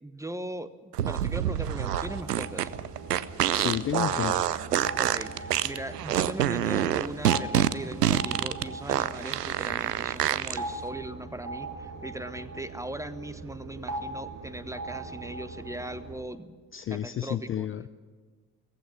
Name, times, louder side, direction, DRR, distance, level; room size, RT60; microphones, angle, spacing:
voice 1, 0.0-2.7 5.0-16.6 16.9-17.7, right 1 dB, 5° right, 14 dB, 0.9 m, -39 dB
sound 1, 0.9-10.6, right 11 dB, 85° right, 0.5 m, -26 dB
sound 2, 1.8-16.2, right 2 dB, 40° right, 2.2 m, -40 dB
voice 2, 3.5-4.5 16.7-17.9, left 10 dB, 30° left, 14 dB, 0.5 m, -31 dB
17.5 x 15.0 x 9.9 m, 1.5 s
figure-of-eight pair, 45°, 46 cm